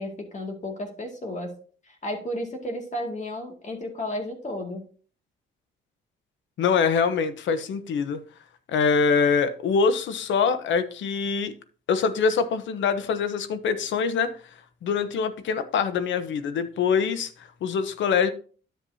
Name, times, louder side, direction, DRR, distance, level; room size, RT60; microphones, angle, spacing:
voice 1, 0.0-1.5 1.9-4.9, left 1 dB, 35° left, 2.2 m, -33 dB
voice 2, 6.6-8.2 8.7-11.5 11.9-14.3 14.8-18.3, left 5 dB, 70° left, 0.9 m, -24 dB
10.0 x 7.3 x 2.8 m
cardioid pair, 90°, 20 cm